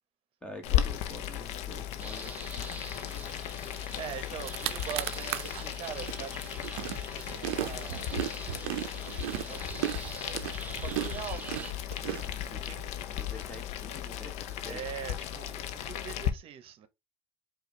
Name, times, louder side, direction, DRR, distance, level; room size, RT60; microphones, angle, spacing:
voice 1, 0.4-3.4 12.5-12.7 13.1-14.8, left 1 dB, 10° left, 1.4 m, -47 dB
Boiling, 0.6-16.3, left 11 dB, 60° left, 0.7 m, -36 dB
sound 1, 2.0-11.7, right 3 dB, 10° right, 0.7 m, -46 dB
voice 2, 3.6-8.1 9.1-13.2 14.7-16.9, right 9 dB, 45° right, 0.8 m, -43 dB
sound 2, 4.0-4.1 4.3-5.6 6.1-12.8, right 13 dB, 80° right, 0.5 m, -36 dB
4.9 x 2.4 x 3.1 m
supercardioid pair, 105°, 13 cm